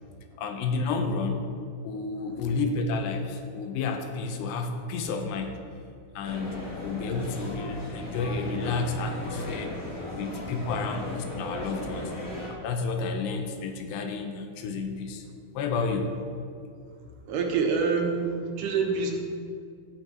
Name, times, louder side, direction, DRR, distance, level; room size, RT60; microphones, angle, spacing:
voice 1, 0.4-1.4 1.8-5.6 6.2-9.7 10.2-12.1 12.4-15.2 15.5-16.1, left 4 dB, 80° left, 5 dB, 3.0 m, -31 dB
sound 1, 6.2-12.5, left 1 dB, 55° left, 0.9 m, -36 dB
voice 2, 17.3-19.2, right 5 dB, 75° right, 2 dB, 2.8 m, -26 dB
13.0 x 9.5 x 4.6 m, 2.3 s
omnidirectional pair, 5.0 m